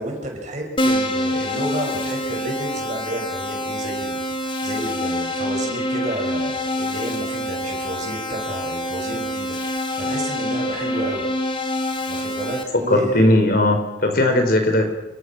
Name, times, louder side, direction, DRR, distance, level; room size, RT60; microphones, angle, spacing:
voice 1, 0.0-4.3 4.6-11.3 12.1-13.3, right 1 dB, 40° right, 1 dB, 6.9 m, -31 dB
Keyboard (musical), 0.8-12.6, left 1 dB, 30° left, 3.0 m, -26 dB
voice 2, 12.9-14.9, left 1 dB, 55° left, 5 dB, 4.8 m, -18 dB
29.0 x 23.0 x 6.4 m, 0.91 s
head